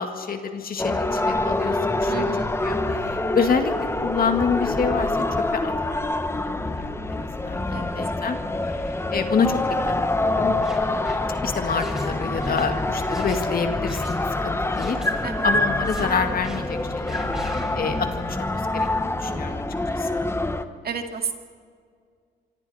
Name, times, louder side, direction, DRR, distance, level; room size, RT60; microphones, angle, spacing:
voice 1, 0.0-3.7 4.0-5.1 5.5-6.1 6.5-8.4 8.6-9.6 9.8-10.5 11.4-17.3 17.8-19.6 19.9-20.3, left 5 dB, 50° left, 6 dB, 2.1 m, -28 dB
sound 1, 0.8-20.6, left 2 dB, 15° left, 1.2 m, -26 dB
voice 2, 2.1-2.5 3.4-3.5 7.7-8.0 15.2-15.5 19.3-19.6 20.8-21.3, right 6 dB, 50° right, 5 dB, 2.4 m, -32 dB
sound 2, 10.5-14.3 14.6-15.1 15.6-16.0 16.4-16.6 17.0-18.2 18.7-18.9 19.7-19.9, equal, 5° right, 5.7 m, -41 dB
26.5 x 25.0 x 4.3 m, 2.1 s
cardioid pair, 90°, 20 cm